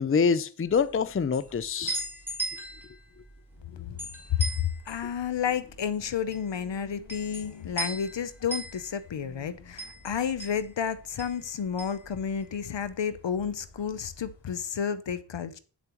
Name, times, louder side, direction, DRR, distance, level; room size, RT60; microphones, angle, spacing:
voice 1, 0.0-2.0, left 5 dB, 30° left, 0.5 m, -25 dB
sound 1, 0.7-12.9 13.2-14.3, right 2 dB, 5° right, 4.4 m, -39 dB
voice 2, 3.7-4.0 4.3-15.6, left 8 dB, 75° left, 0.6 m, -31 dB
8.2 x 7.1 x 3.0 m
wide cardioid pair, 50°, 44 cm